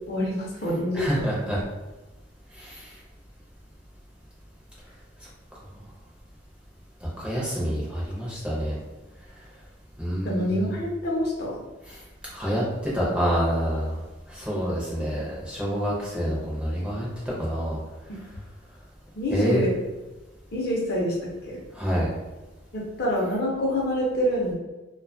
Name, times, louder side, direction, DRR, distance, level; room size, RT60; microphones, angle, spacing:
voice 1, 0.1-1.3 10.2-11.6 18.1-18.2 19.1-19.7 20.5-21.2 21.4-21.6 22.7-24.5, equal, 50° left, -3 dB, 0.6 m, -26 dB
voice 2, 0.9-1.6 2.5-3.0 7.0-8.8 9.4-9.5 10.0-10.7 11.9-12.0 12.3-14.0 14.3-17.8 19.3-19.7 21.7-22.1, equal, 5° right, -6 dB, 0.5 m, -27 dB
2.5 x 2.2 x 2.6 m, 1.1 s
head